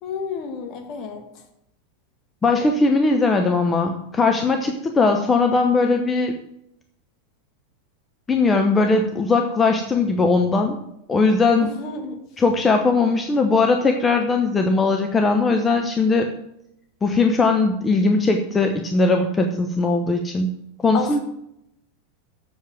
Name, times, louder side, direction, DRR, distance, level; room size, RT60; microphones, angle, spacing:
voice 1, 0.0-1.2 11.6-12.2 20.9-21.2, left 5 dB, 40° left, 4 dB, 1.8 m, -30 dB
voice 2, 2.4-6.4 8.3-10.8 11.1-11.7 12.4-16.3 17.0-20.5 20.8-21.2, left 3 dB, 20° left, 4 dB, 0.9 m, -19 dB
7.5 x 7.4 x 7.7 m, 0.81 s
figure-of-eight pair, 90°, 0 cm